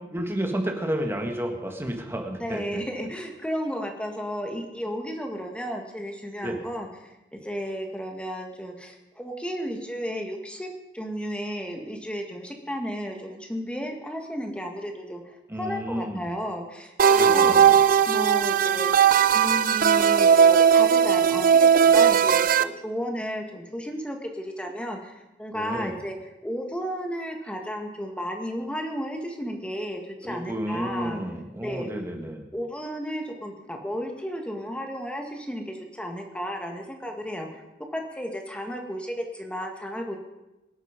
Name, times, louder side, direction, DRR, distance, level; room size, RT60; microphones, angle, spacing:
voice 1, 0.1-2.8 6.4-6.6 15.5-16.3 17.2-17.8 25.5-26.0 30.2-32.4, equal, 15° right, 3 dB, 1.9 m, -31 dB
voice 2, 2.4-26.2 26.4-31.2 31.6-31.9 32.5-37.6 37.9-40.2, equal, 5° left, 3 dB, 1.8 m, -33 dB
sound 1, 17.0-22.6, right 7 dB, 50° right, 0.5 m, -18 dB
24.0 x 8.2 x 5.2 m, 0.99 s
head